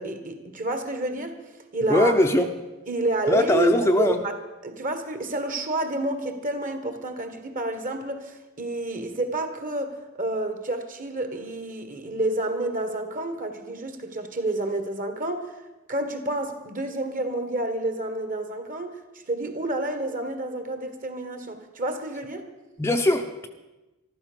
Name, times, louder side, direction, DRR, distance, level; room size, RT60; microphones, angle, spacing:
voice 1, 0.0-1.4 1.7-2.1 2.9-4.3 4.6-9.9 10.2-15.5 15.9-18.9 19.3-22.4, right 2 dB, 40° right, 8 dB, 1.8 m, -29 dB
voice 2, 1.9-2.5 3.3-4.2 22.8-23.5, left 1 dB, 10° left, 4 dB, 0.7 m, -20 dB
14.0 x 12.5 x 6.9 m, 1.1 s
head